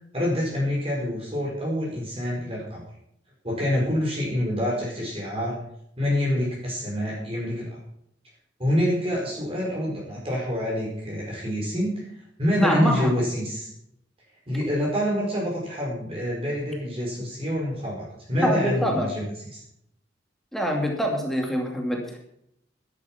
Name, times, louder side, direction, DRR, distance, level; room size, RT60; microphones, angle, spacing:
voice 1, 0.1-2.8 3.4-5.6 6.0-7.8 8.6-12.1 12.4-13.7 14.5-19.6, equal, 30° right, -3 dB, 4.7 m, -27 dB
voice 2, 12.6-13.1 18.4-19.1 20.5-22.2, equal, ahead, 1 dB, 2.5 m, -24 dB
12.5 x 12.0 x 5.9 m, 0.74 s
head